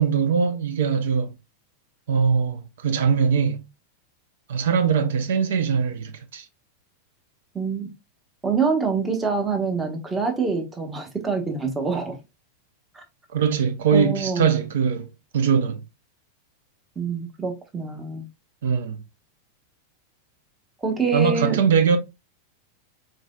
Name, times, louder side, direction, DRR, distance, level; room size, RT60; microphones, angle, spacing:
voice 1, 0.0-1.3 2.1-3.6 4.5-6.4 13.3-15.1 15.3-15.8 18.6-19.0 21.1-22.0, right 6 dB, 60° right, 0.7 m, -21 dB
voice 2, 7.5-7.9 8.4-12.2 12.9-13.0 13.9-14.5 17.0-18.2 20.8-21.6, right 4 dB, 15° right, 1.1 m, -25 dB
3.9 x 3.9 x 2.3 m
figure-of-eight pair, 90°, 0 cm